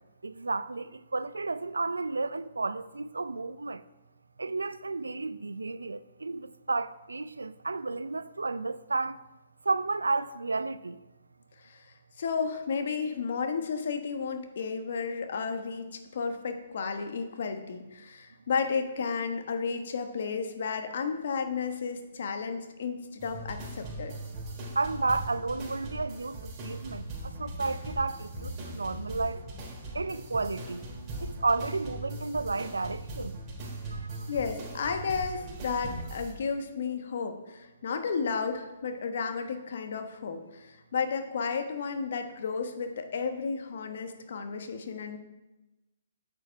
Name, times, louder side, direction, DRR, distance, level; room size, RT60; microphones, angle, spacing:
voice 1, 0.2-3.8 4.4-9.2 9.7-11.0 24.8-29.4 29.9-30.8 31.2-33.4 33.9-34.1, right 3 dB, 85° right, 0.4 m, -32 dB
voice 2, 11.6-24.1 34.3-45.2, left 5 dB, 60° left, 1.2 m, -33 dB
sound 1, 23.2-36.3, right 1 dB, 25° right, 3.6 m, -40 dB
8.7 x 7.7 x 4.6 m
hypercardioid pair, 135°, 0 cm